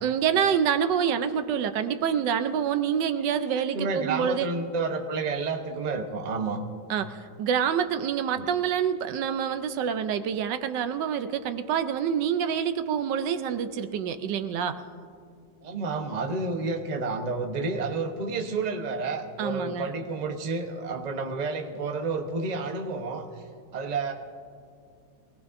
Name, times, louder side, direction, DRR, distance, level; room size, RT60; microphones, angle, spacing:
voice 1, 0.0-4.5 6.9-14.8 19.4-19.9, right 8 dB, 80° right, 10 dB, 1.3 m, -27 dB
voice 2, 3.7-6.6 8.4-8.5 15.6-23.4 23.7-24.1, right 3 dB, 30° right, 4 dB, 0.8 m, -30 dB
23.5 x 18.0 x 2.6 m, 2.3 s
omnidirectional pair, 1.9 m